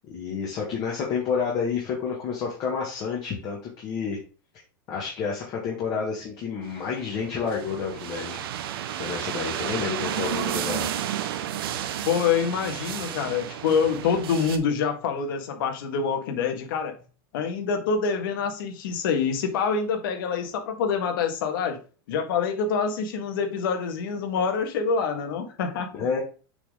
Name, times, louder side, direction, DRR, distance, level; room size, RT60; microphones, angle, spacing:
voice 1, 0.1-4.2 4.9-8.4 9.0-10.9 26.0-26.2, left 6 dB, 35° left, 1.9 m, -29 dB
sound 1, 6.7-14.6, right 10 dB, 75° right, 0.9 m, -32 dB
voice 2, 12.1-17.0 17.3-21.8 22.1-25.9, left 6 dB, 65° left, 1.7 m, -26 dB
6.9 x 4.0 x 3.7 m
supercardioid pair, 165°, 12 cm